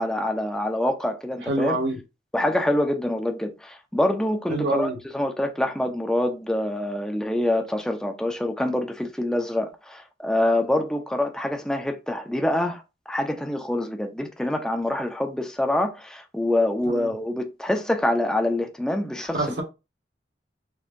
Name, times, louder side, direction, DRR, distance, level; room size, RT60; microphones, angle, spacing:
voice 1, 0.0-1.8 2.3-19.5, left 1 dB, 5° left, 0.5 m, -25 dB
voice 2, 1.4-2.0 4.5-5.0 16.9-17.1 19.3-19.6, right 2 dB, 75° right, 1.4 m, -26 dB
4.4 x 2.6 x 2.5 m
head